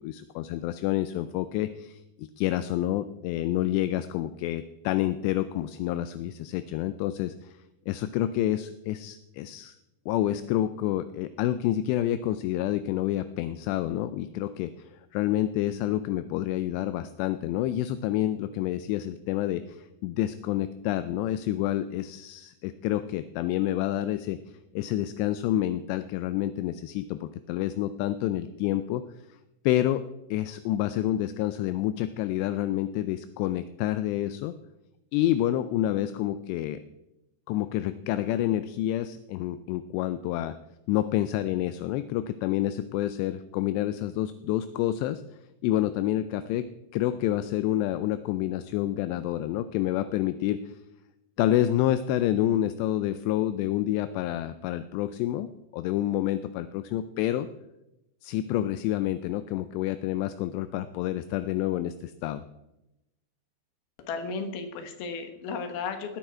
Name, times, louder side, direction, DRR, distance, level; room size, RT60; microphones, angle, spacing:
voice 1, 0.0-7.5 7.9-9.8 10.1-24.4 24.8-29.0 29.6-30.0 30.3-34.5 35.1-36.8 37.5-40.6 40.9-45.2 45.6-46.7 46.9-50.6 51.4-57.5 58.2-62.4, left 13 dB, 80° left, 12 dB, 2.6 m, -28 dB
voice 2, 64.0-66.2, left 5 dB, 65° left, 7 dB, 2.9 m, -34 dB
19.0 x 9.1 x 4.5 m, 0.93 s
omnidirectional pair, 5.3 m